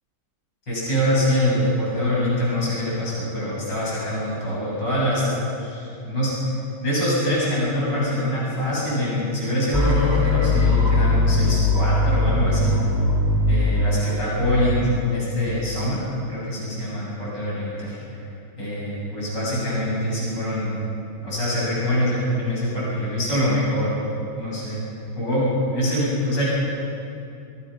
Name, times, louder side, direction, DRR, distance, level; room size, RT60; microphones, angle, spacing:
voice 1, 0.7-5.2 5.6-6.3 6.8-12.7 13.5-16.0 16.3-18.2 18.6-20.8 21.2-23.9 24.3-24.8 25.2-26.4, left 1 dB, 60° left, -7 dB, 8.6 m, -24 dB
sound 1, 9.7-15.7, left 2 dB, 10° right, 2.9 m, -21 dB
27.5 x 21.5 x 5.9 m, 2.7 s
omnidirectional pair, 2.2 m